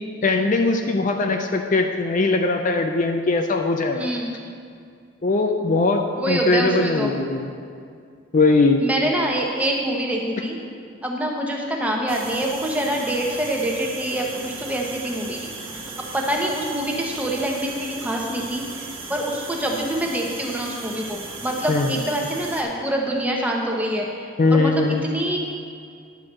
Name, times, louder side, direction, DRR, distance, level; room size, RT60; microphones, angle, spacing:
voice 1, 0.2-4.1 5.2-7.5 8.3-8.8 21.7-22.0 24.4-25.0, left 3 dB, 45° left, 4 dB, 0.5 m, -20 dB
voice 2, 3.9-4.3 6.1-7.1 8.8-10.6 11.0-15.4 16.1-18.6 19.1-25.4, right 1 dB, 10° right, -1 dB, 1.0 m, -25 dB
sound 1, 12.1-22.6, right 3 dB, 30° right, 1.3 m, -36 dB
10.5 x 4.7 x 7.4 m, 2.3 s
head